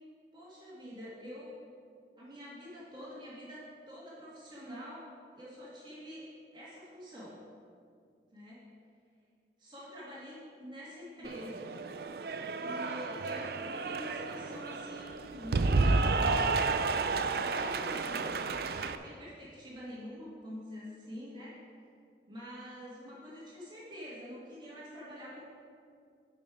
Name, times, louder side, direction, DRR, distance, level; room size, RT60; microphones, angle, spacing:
voice 1, 0.3-1.6 2.2-5.1 5.3-6.2 6.5-7.4 8.3-8.6 9.6-11.7 12.6-16.7 17.3-18.4 19.0-21.6 22.3-25.4, equal, 25° right, -7 dB, 1.9 m, -46 dB
Cheering / Applause, 11.2-19.0, right 3 dB, 60° right, 0.4 m, -31 dB
11.0 x 5.3 x 5.0 m, 2.3 s
head